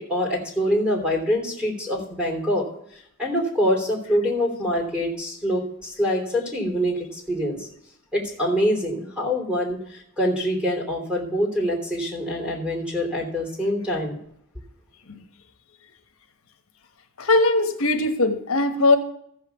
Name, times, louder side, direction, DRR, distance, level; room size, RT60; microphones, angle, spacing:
voice 1, 0.0-2.7 3.2-7.7 8.1-14.2, equal, 5° right, -3 dB, 3.1 m, -25 dB
voice 2, 17.2-19.0, left 2 dB, 85° left, 6 dB, 1.2 m, -20 dB
14.0 x 5.7 x 7.0 m, 0.71 s
head